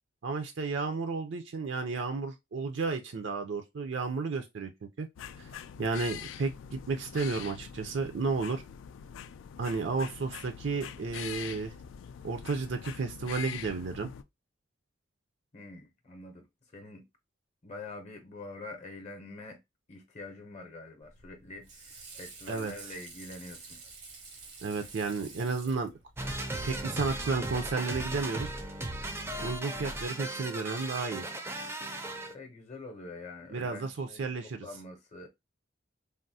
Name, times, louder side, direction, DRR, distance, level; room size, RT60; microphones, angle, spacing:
voice 1, 0.2-5.1 5.4-5.5 5.8-8.6 9.6-11.7 12.2-14.1 22.5-22.7 24.6-25.9 26.6-28.5 29.4-31.2 33.5-34.7, right 4 dB, 70° right, 0.5 m, -32 dB
raw squirrelbark, 5.2-14.2, left 8 dB, 85° left, 0.3 m, -44 dB
voice 2, 15.5-16.4 16.7-17.0 17.6-19.6 19.9-23.8 32.3-35.3, left 2 dB, 35° left, 0.6 m, -45 dB
Water / Sink (filling or washing), 21.0-26.5, right 4 dB, 90° right, 1.1 m, -50 dB
sound 1, 26.2-32.3, right 1 dB, 15° right, 0.4 m, -37 dB
3.4 x 2.0 x 2.6 m
head